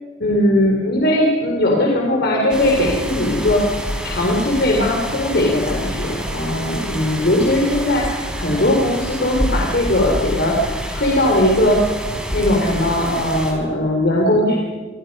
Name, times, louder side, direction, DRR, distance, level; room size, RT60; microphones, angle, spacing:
voice 1, 0.2-11.8 12.3-14.6, left 1 dB, 55° left, -1 dB, 3.7 m, -19 dB
sound 1, 2.5-13.5, equal, 5° right, 4.1 m, -27 dB
27.5 x 25.0 x 5.4 m, 1.5 s
head